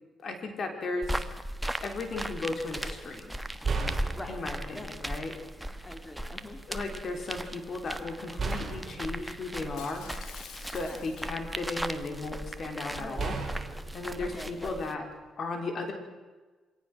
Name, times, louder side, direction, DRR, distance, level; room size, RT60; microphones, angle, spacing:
voice 1, 0.2-1.3 1.8-3.3 4.3-5.3 6.7-10.1 10.7-13.4 13.9-15.1 15.4-15.9, left 3 dB, 50° left, 5 dB, 4.0 m, -35 dB
sound 1, 1.0-14.9, right 1 dB, 5° right, 1.3 m, -38 dB
sound 2, 2.9-3.0 3.6-4.9 5.8-6.0 8.4-10.6 11.1-12.0 13.2-15.3, right 4 dB, 35° right, 4.7 m, -36 dB
voice 2, 4.0-4.4 4.7-4.9 5.2-5.3 5.6-6.6 10.8-11.1 12.4-12.5 12.9-13.3 14.2-14.7, left 1 dB, 15° left, 4 dB, 2.8 m, -44 dB
Shatter, 9.8-11.6 12.0-12.3, left 8 dB, 80° left, 2.2 m, -48 dB
25.0 x 18.0 x 6.2 m, 1.3 s
cardioid pair, 90°, 0 cm